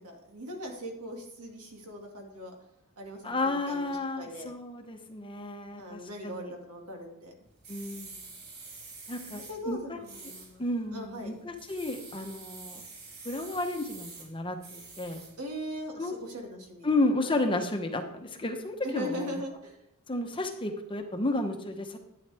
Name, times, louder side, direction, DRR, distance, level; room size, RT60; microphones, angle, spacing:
voice 1, 0.0-2.5 3.0-4.5 5.8-7.3 9.2-10.6 10.9-11.4 15.4-16.9 17.2-17.4 18.8-19.8, equal, 85° right, 2 dB, 2.2 m, -40 dB
voice 2, 3.2-6.5 7.7-8.2 9.1-10.0 10.6-12.8 13.2-15.2 16.0-16.1 16.8-19.4 20.1-22.0, left 2 dB, 25° left, 5 dB, 0.9 m, -32 dB
sound 1, 7.4-15.5, right 4 dB, 45° right, 3.1 m, -48 dB
11.5 x 9.2 x 3.5 m, 0.83 s
head